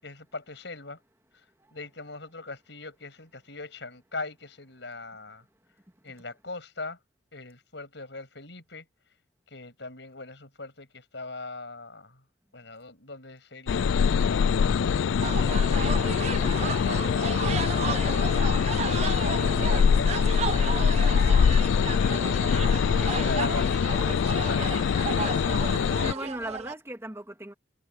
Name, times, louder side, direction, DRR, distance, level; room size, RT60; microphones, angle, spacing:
voice 1, 0.0-1.0 1.7-5.4 6.0-7.0 7.3-8.8 9.5-12.2 12.5-16.5 17.1-21.2 23.0-24.8, left 3 dB, 70° left, 6.8 m, -40 dB
sound 1, 13.7-26.1, left 6 dB, 85° left, 0.3 m, -23 dB
sound 2, 15.2-26.7, right 6 dB, 35° right, 0.3 m, -34 dB
voice 2, 25.7-27.5, right 1 dB, 15° right, 2.2 m, -38 dB
head